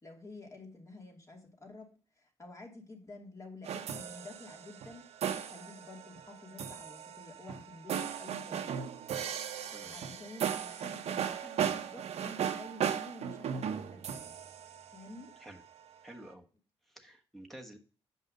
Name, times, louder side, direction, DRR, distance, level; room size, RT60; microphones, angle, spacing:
voice 1, 0.0-1.9 2.2-5.1 5.5-8.9 9.5-14.3 14.9-15.3, left 2 dB, 30° left, 1 dB, 2.8 m, -50 dB
sound 1, 3.6-15.5, right 8 dB, 85° right, 0.9 m, -37 dB
voice 2, 16.0-16.5 16.9-17.8, right 1 dB, ahead, 3 dB, 1.3 m, -50 dB
8.1 x 5.5 x 5.3 m, 0.38 s
cardioid pair, 100°, 11 cm